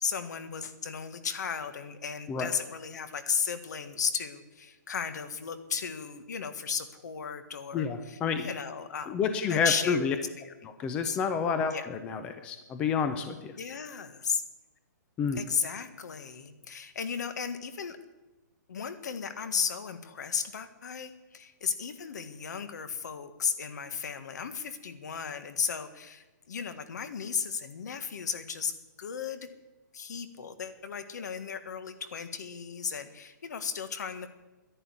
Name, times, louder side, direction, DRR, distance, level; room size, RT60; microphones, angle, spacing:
voice 1, 0.0-10.1 10.4-10.7 11.0-11.2 11.7-11.9 13.6-14.4 15.3-18.0 18.7-29.5 29.9-34.3, left 6 dB, 65° left, 11 dB, 1.6 m, -35 dB
voice 2, 7.7-8.5 9.1-10.1 10.8-13.5 15.2-15.4, left 6 dB, 10° left, 9 dB, 0.5 m, -29 dB
11.0 x 10.5 x 9.8 m, 1.1 s
hypercardioid pair, 175°, 10 cm